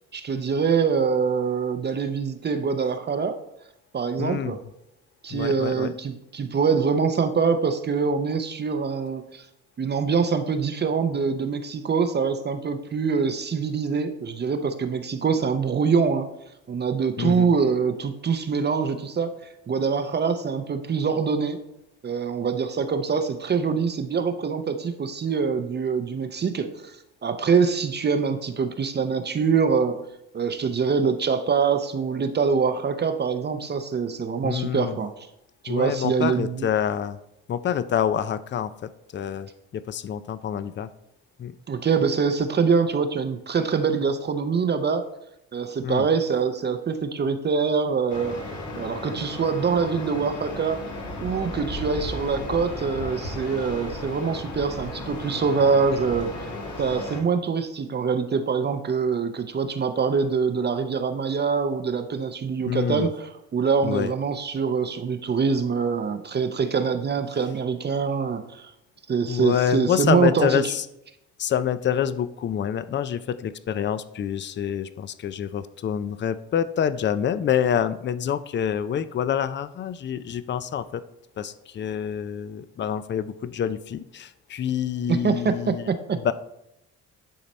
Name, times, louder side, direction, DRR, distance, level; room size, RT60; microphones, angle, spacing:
voice 1, 0.1-3.4 3.9-4.6 5.2-9.4 9.8-16.3 16.7-19.4 19.7-21.6 22.0-26.9 27.2-30.0 30.3-35.1 35.6-36.7 41.7-45.0 45.5-48.4 48.8-50.8 51.2-56.5 56.8-63.1 63.5-68.7 69.1-70.6 85.1-85.5 85.9-86.2, right 5 dB, 35° right, 8 dB, 0.6 m, -24 dB
voice 2, 4.2-4.6 5.3-5.9 17.2-17.5 34.4-35.0 35.7-37.2 37.5-40.9 41.4-41.6 45.8-46.1 62.7-63.1 63.8-64.1 69.3-70.9 71.4-81.0 81.4-85.9 86.2-86.3, left 9 dB, 40° left, 14 dB, 0.5 m, -27 dB
sound 1, 48.1-57.2, left 2 dB, 75° left, 1.8 m, -35 dB
10.5 x 4.0 x 4.3 m, 0.83 s
cardioid pair, 90°, 30 cm